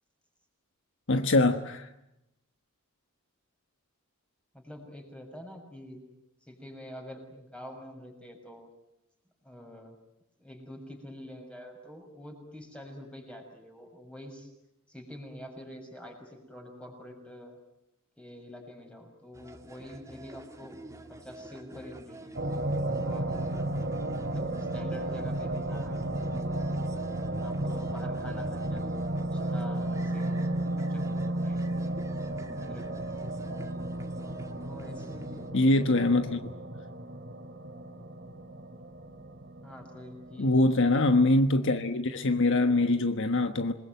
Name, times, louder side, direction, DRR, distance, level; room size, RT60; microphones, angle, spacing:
voice 1, 1.1-1.9 35.5-36.5 40.4-43.7, left 2 dB, 60° left, 1.3 m, -24 dB
voice 2, 4.5-6.0 6.4-8.7 9.4-10.0 10.4-14.5 14.9-17.6 18.2-20.8 21.2-22.3 23.0-23.7 24.2-26.5 27.4-30.4 30.7-31.6 32.5-33.0 34.6-35.5 39.6-40.8, equal, 5° left, 6.6 m, -46 dB
sound 1, 19.3-35.5, right 1 dB, 15° right, 2.0 m, -49 dB
sound 2, 22.3-41.0, right 1 dB, 50° right, 3.0 m, -33 dB
27.5 x 21.0 x 9.3 m
head